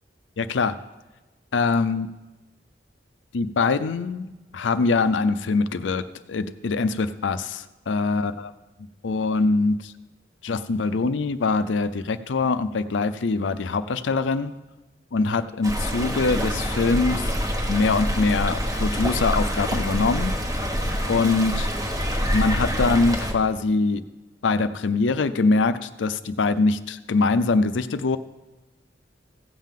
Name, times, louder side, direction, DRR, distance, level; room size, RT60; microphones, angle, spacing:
voice 1, 0.4-0.7 1.5-2.1 3.3-4.3 4.5-6.0 6.3-8.3 9.0-9.9 10.4-14.5 15.1-17.3 17.7-20.3 21.1-21.7 22.3-24.0 24.4-28.2, left 3 dB, 75° left, 13 dB, 0.5 m, -23 dB
Stream, 15.6-23.3, equal, 20° right, 1.0 m, -26 dB
16.0 x 7.4 x 3.7 m, 1.2 s
head